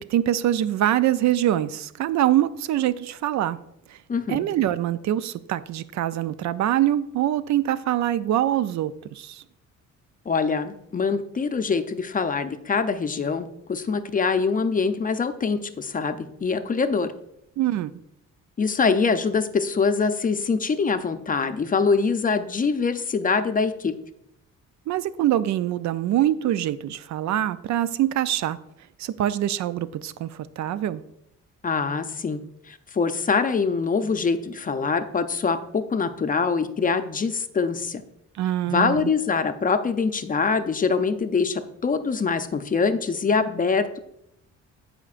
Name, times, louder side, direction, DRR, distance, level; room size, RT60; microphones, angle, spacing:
voice 1, 0.0-3.6 3.9-4.0 4.3-9.4 17.6-17.9 24.9-28.6 29.0-31.0 38.4-39.1, right 12 dB, 70° right, 15 dB, 0.4 m, -24 dB
voice 2, 4.1-4.5 10.3-17.1 18.6-23.9 31.6-32.4 32.7-38.0 38.7-44.0, left 5 dB, 30° left, 9 dB, 0.5 m, -24 dB
13.0 x 5.1 x 2.5 m, 0.79 s
cardioid pair, 90°, 30 cm